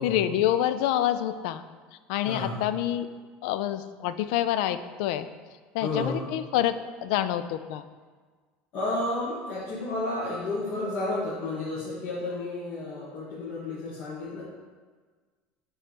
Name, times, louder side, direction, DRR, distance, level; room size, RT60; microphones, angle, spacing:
voice 1, 0.0-1.6 2.1-3.1 3.4-5.3 5.7-7.8, left 12 dB, 80° left, 12 dB, 0.3 m, -27 dB
voice 2, 2.2-2.6 5.8-6.2 8.7-14.4, left 2 dB, 55° left, -8 dB, 1.3 m, -31 dB
6.0 x 3.2 x 5.0 m, 1.5 s
cardioid pair, 145°, 4 cm